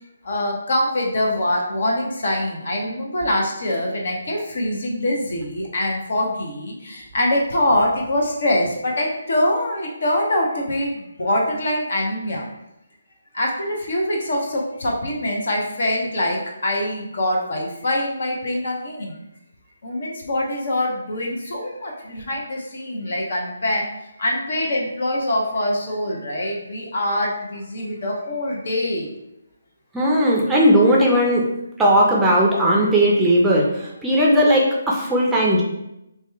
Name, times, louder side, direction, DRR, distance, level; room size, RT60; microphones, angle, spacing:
voice 1, 0.2-12.5 13.3-19.2 19.8-23.9 24.2-29.1, left 1 dB, 60° left, -1 dB, 0.8 m, -24 dB
voice 2, 29.9-31.4 31.8-35.6, equal, 5° right, -4 dB, 0.5 m, -17 dB
2.8 x 2.3 x 3.3 m, 0.86 s
figure-of-eight pair, 150°, 0 cm